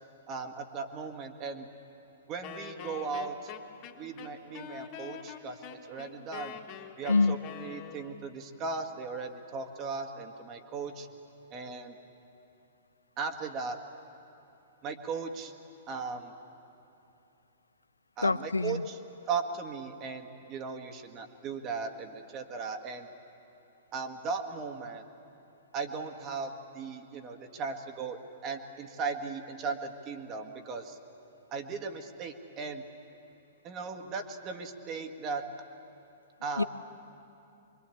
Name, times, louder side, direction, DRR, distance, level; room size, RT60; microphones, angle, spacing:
voice 1, 0.3-1.7 2.3-3.5 4.0-6.6 7.0-11.1 11.5-12.0 13.2-13.8 14.8-15.5 15.9-16.3 18.2-19.0 19.3-23.1 23.9-25.0 25.7-31.0 31.5-32.8 33.6-35.4 36.4-36.6, right 4 dB, 30° right, 5 dB, 1.9 m, -37 dB
Wind instrument woodwind instrument, 2.4-8.3, left 8 dB, 40° left, 2.2 m, -45 dB
voice 2, 18.2-18.8 36.6-36.7, left 3 dB, 85° left, 17 dB, 0.6 m, -25 dB
25.0 x 22.5 x 8.6 m, 2.8 s
figure-of-eight pair, 110°, 0 cm